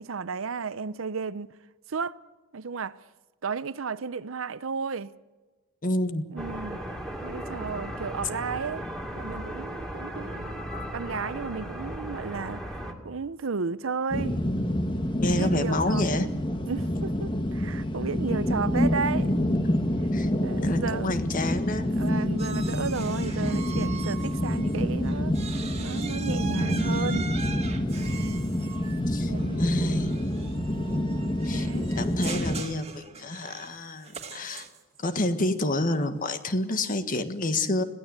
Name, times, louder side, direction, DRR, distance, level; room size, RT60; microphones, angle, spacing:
voice 1, 0.0-1.5 1.9-2.2 2.5-3.0 3.4-5.1 6.3-6.8 7.2-8.9 9.2-10.6 10.9-12.8 13.0-14.4 15.2-16.3 16.7-19.3 20.4-21.2 22.0-25.3 25.8-27.3 29.3-29.6 31.5-31.9, right 5 dB, 70° right, 0.7 m, -33 dB
voice 2, 5.8-6.3 15.2-16.3 20.1-20.3 20.6-21.9 29.1-29.3 29.6-30.2 31.4-34.7 35.0-37.8, left 2 dB, 45° left, 1.6 m, -29 dB
sound 1, 6.4-12.9, equal, 5° left, 2.6 m, -36 dB
sound 2, 14.1-32.6, left 1 dB, 25° left, 1.3 m, -27 dB
sound 3, 22.4-24.8 25.0-35.0, right 6 dB, 30° right, 2.2 m, -41 dB
21.5 x 16.5 x 8.1 m
head